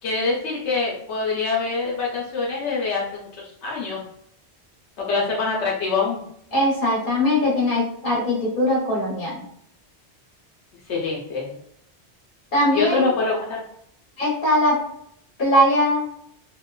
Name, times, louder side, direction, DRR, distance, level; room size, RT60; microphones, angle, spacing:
voice 1, 0.0-4.0 5.1-6.2 10.9-11.5 12.7-13.6, left 4 dB, 85° left, -3 dB, 1.0 m, -25 dB
voice 2, 6.5-9.4 12.5-13.1 14.2-14.8 15.4-16.1, left 1 dB, 50° left, -4 dB, 1.1 m, -20 dB
2.9 x 2.1 x 2.2 m, 0.68 s
omnidirectional pair, 1.1 m